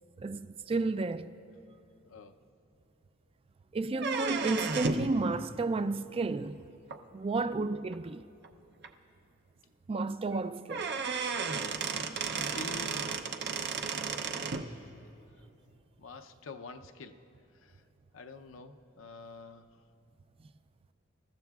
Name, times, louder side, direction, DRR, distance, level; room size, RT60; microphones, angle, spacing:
voice 1, 0.2-1.3 3.7-6.6 7.1-8.2 9.9-10.9 11.9-12.2, right 3 dB, 30° right, 0.4 m, -32 dB
voice 2, 2.0-2.4 11.2-11.5 11.9-13.9 14.1-14.3 14.6-14.7 15.0-15.1 16.0-17.1 17.6-17.8 18.1-19.7, left 4 dB, 80° left, 0.6 m, -48 dB
sound 1, 3.9-5.1 6.9-7.0 7.9-8.0 8.4-8.5 8.8-8.9 10.3-10.4 10.7-14.7, right 5 dB, 55° right, 0.7 m, -33 dB
27.0 x 14.0 x 2.3 m
head